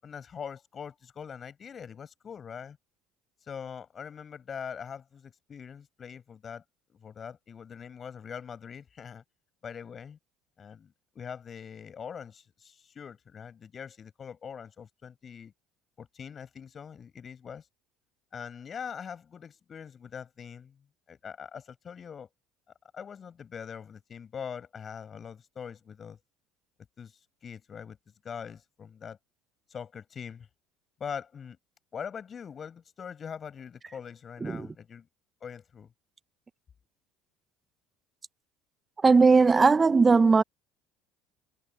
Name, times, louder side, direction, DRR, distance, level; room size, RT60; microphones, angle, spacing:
voice 1, 0.0-2.8 3.5-6.6 6.9-9.2 9.6-10.2 10.6-15.5 16.0-17.6 18.3-20.8 21.1-22.3 22.9-26.2 27.0-27.1 27.4-28.0 28.2-29.2 29.7-30.5 31.0-31.6 31.9-35.1 35.4-35.9, left 7 dB, 40° left, 7.2 m, -42 dB
voice 2, 34.4-34.7 39.0-40.4, right 4 dB, 25° right, 1.4 m, -19 dB
hypercardioid pair, 65°, 0 cm